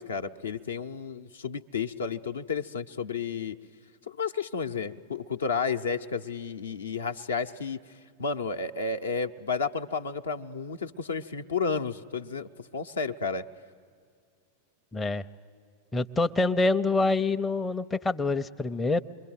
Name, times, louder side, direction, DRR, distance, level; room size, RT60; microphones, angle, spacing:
voice 1, 0.0-3.6 4.1-7.8 8.2-13.4, left 5 dB, 70° left, 8 dB, 0.8 m, -32 dB
voice 2, 14.9-15.2 15.9-19.0, left 3 dB, 15° left, 8 dB, 0.6 m, -26 dB
27.0 x 22.0 x 9.3 m, 2.1 s
figure-of-eight pair, 90°, 0 cm